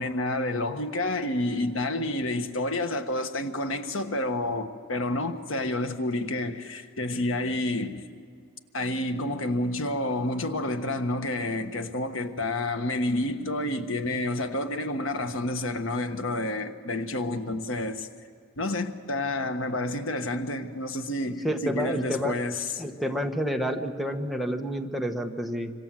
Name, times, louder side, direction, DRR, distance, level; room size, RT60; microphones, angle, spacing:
voice 1, 0.0-8.1 8.7-18.1 18.6-22.8, left 2 dB, 90° left, 1.4 m, -29 dB
voice 2, 21.4-22.3 22.8-25.7, equal, ahead, 1.4 m, -29 dB
27.0 x 25.0 x 7.6 m
head